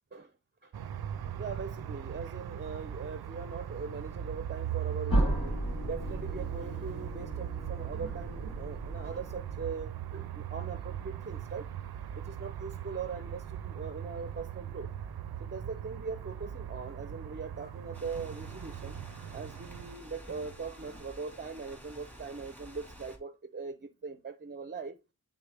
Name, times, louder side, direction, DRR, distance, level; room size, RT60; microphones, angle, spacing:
sound 1, 0.7-20.0, right 10 dB, 80° right, 0.5 m, -40 dB
voice 1, 1.4-14.9 15.4-19.0 19.3-25.0, right 5 dB, 30° right, 0.5 m, -41 dB
sound 2, 5.1-9.8, right 1 dB, 70° left, 2.5 m, -34 dB
sound 3, 17.9-23.2, equal, 5° left, 1.9 m, -50 dB
9.6 x 3.7 x 3.4 m
wide cardioid pair, 75°, 37 cm